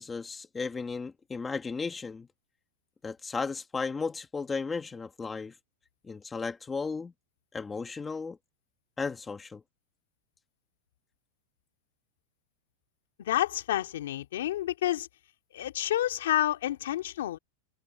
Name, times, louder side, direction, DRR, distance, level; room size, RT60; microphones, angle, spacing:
voice 1, 0.0-2.3 3.0-5.5 6.0-7.1 7.5-8.4 9.0-9.6, left 4 dB, 10° left, 1.6 m, -35 dB
voice 2, 13.2-15.1 15.5-17.4, left 13 dB, 80° left, 2.2 m, -29 dB
supercardioid pair, 180°, 0 cm